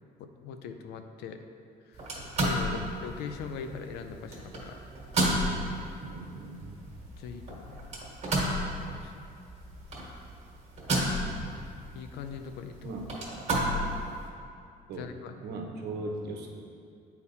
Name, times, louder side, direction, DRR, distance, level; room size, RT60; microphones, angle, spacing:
voice 1, 0.2-1.4 1.8-4.8 7.2-8.1 9.0-9.1 11.9-12.9 15.0-15.3, left 6 dB, 80° left, 7 dB, 0.5 m, -41 dB
sound 1, 1.9-14.3, right 1 dB, 40° right, 1.5 m, -33 dB
voice 2, 6.0-6.8 12.8-13.1 14.9-15.1 15.4-16.5, right 2 dB, 75° right, 1 dB, 0.9 m, -38 dB
8.3 x 4.2 x 2.7 m, 2.4 s
cardioid pair, 110°, 17 cm